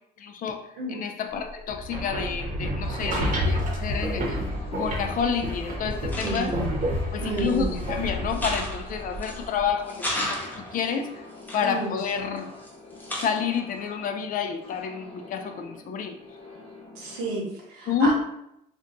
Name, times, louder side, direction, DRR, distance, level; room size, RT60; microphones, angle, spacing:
voice 1, 0.2-0.6 0.9-4.4 4.7-6.6 7.1-11.2 11.5-12.5 13.1-16.2 17.9-18.1, left 6 dB, 55° left, 6 dB, 0.4 m, -29 dB
sound 1, 1.7-9.7, equal, 50° right, 0.8 m, -30 dB
sound 2, 2.8-17.3, left 2 dB, 30° left, 0.9 m, -45 dB
sound 3, 5.3-5.4 5.9-6.7 7.4-7.9 8.3-9.5 9.9-10.9 11.4-12.7 13.0-13.6, left 1 dB, 10° left, 0.7 m, -34 dB
voice 2, 6.2-6.8 7.2-7.8 11.6-12.0 16.9-18.1, right 2 dB, 85° right, -1 dB, 1.0 m, -31 dB
2.5 x 2.2 x 3.8 m, 0.80 s
cardioid pair, 110°, 17 cm